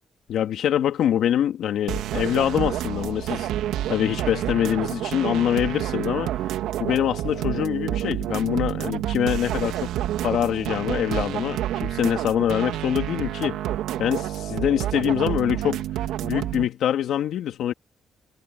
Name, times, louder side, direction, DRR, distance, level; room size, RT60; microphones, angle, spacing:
voice 1, 0.3-3.5 3.9-6.3 6.8-9.9 10.2-13.6 14.0-15.8 16.2-17.7, left 10 dB, 75° left, 2.9 m, -24 dB
sound 1, 1.9-16.6, right 12 dB, 90° right, 2.9 m, -29 dB
cardioid pair, 90°, 0 cm